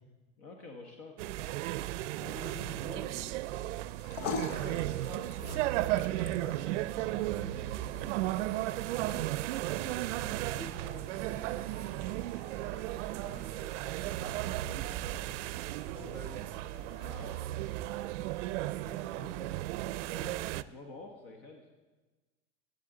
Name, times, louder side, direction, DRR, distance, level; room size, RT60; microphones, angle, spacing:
voice 1, 0.4-1.3 12.6-15.1 16.8-17.4 20.0-21.7, left 3 dB, 45° left, 3 dB, 1.1 m, -51 dB
sound 1, 1.2-20.6, right 15 dB, 80° right, 0.5 m, -35 dB
voice 2, 2.2-3.2 4.5-5.3 5.7-8.1 8.8-10.2 10.5-12.0 15.9-16.4 18.6-19.7, right 1 dB, 5° left, -2 dB, 3.2 m, -48 dB
sound 2, 3.8-20.3, left 5 dB, 90° left, 0.8 m, -48 dB
15.5 x 8.4 x 3.8 m, 1.2 s
supercardioid pair, 160°, 36 cm